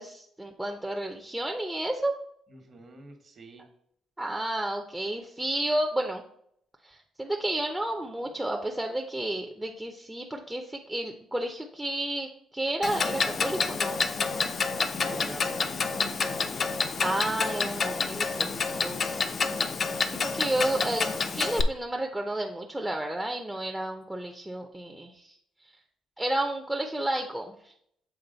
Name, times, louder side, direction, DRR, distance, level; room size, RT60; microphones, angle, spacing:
voice 1, 0.0-2.1 4.2-6.2 6.8-14.0 16.5-19.2 20.1-25.4 26.2-27.7, right 1 dB, 10° right, 2 dB, 0.6 m, -31 dB
voice 2, 2.5-3.7 14.9-16.0, right 2 dB, 50° right, 5 dB, 1.3 m, -45 dB
Clock, 12.8-21.6, left 4 dB, 45° left, 0.5 m, -28 dB
7.1 x 3.8 x 3.9 m, 0.69 s
cardioid pair, 90°, 0 cm